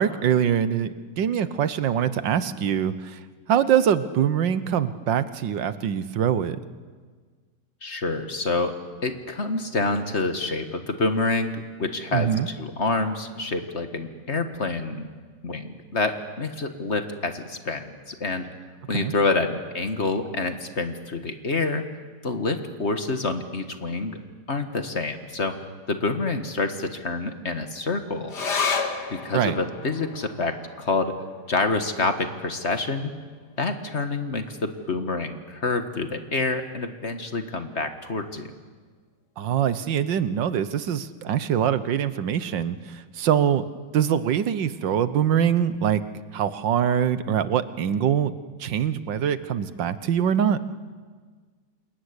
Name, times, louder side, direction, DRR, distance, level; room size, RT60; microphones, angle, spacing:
voice 1, 0.0-3.2 3.5-6.6 12.1-12.5 18.9-19.1 29.3-29.6 39.4-43.7 43.9-46.0 46.3-48.3 48.6-50.6, right 9 dB, 90° right, 14 dB, 1.7 m, -23 dB
voice 2, 7.8-8.8 9.0-15.1 15.4-18.5 18.9-21.8 22.2-24.2 24.5-28.3 29.1-31.1 31.5-33.1 33.6-38.5, left 3 dB, 40° left, 8 dB, 1.8 m, -27 dB
sound 1, 28.3-35.1 35.4-35.5 35.8-36.5 37.1-37.2, left 5 dB, 70° left, 2.5 m, -34 dB
27.5 x 21.5 x 9.8 m, 1.5 s
omnidirectional pair, 1.9 m